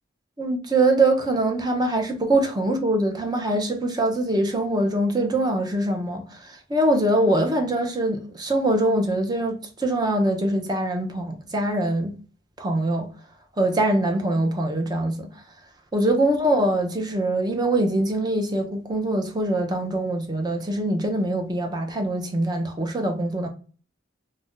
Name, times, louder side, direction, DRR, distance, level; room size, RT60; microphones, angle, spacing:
voice 1, 0.4-12.1 12.6-13.1 13.6-15.3 15.9-23.5, right 1 dB, 20° right, 0.5 m, -23 dB
2.4 x 2.1 x 3.6 m
head